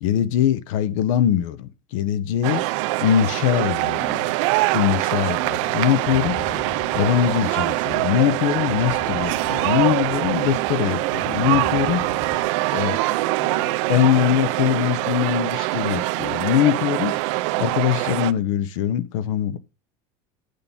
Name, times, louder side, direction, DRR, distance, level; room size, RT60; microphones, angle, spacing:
voice 1, 0.0-2.6 3.0-4.3 4.7-6.4 6.9-12.0 12.7-17.2 17.6-19.6, left 11 dB, 75° left, 1.0 m, -22 dB
sound 1, 2.4-18.3, right 20 dB, 65° right, 0.5 m, -24 dB
sound 2, 6.1-12.5, left 4 dB, 50° left, 3.9 m, -38 dB
8.4 x 6.7 x 3.6 m
supercardioid pair, 150°, 17 cm